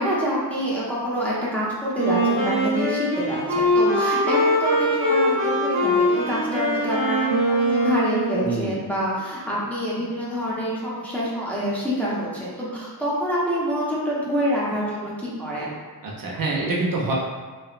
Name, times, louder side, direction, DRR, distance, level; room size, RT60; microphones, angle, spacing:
voice 1, 0.0-15.8, equal, 5° left, -7 dB, 0.5 m, -26 dB
Wind instrument woodwind instrument, 1.9-8.7, equal, 35° right, 0.8 m, -22 dB
voice 2, 8.4-8.7 16.0-17.1, right 3 dB, 55° right, -3 dB, 0.5 m, -26 dB
3.1 x 2.0 x 2.4 m, 1.4 s
wide cardioid pair, 120°, 40 cm